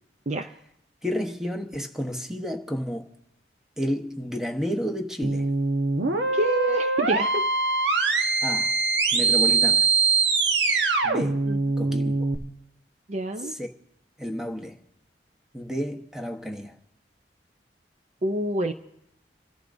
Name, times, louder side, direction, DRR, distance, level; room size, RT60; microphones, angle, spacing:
voice 1, 1.0-3.1 3.8-5.5 8.4-8.7 9.1-9.9 11.0-11.4 11.8-12.3 13.5-13.7 14.2-14.8 15.5-16.7, equal, 5° right, 1.0 m, -31 dB
sound 1, 5.2-12.4, right 4 dB, 80° right, 1.1 m, -23 dB
voice 2, 6.3-7.4 11.5-11.6 13.1-13.5 18.2-18.7, right 2 dB, 40° right, 0.5 m, -27 dB
28.0 x 13.5 x 2.6 m
head